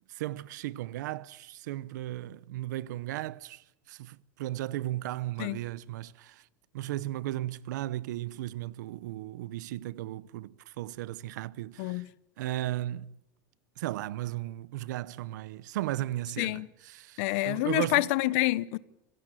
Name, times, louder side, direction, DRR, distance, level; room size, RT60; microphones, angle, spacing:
voice 1, 0.1-6.4 6.7-12.1 12.4-13.1 13.8-18.0, right 15 dB, 85° right, 0.8 m, -36 dB
voice 2, 17.2-18.8, left 19 dB, 50° left, 0.8 m, -27 dB
26.0 x 16.5 x 9.1 m
supercardioid pair, 175°, 9 cm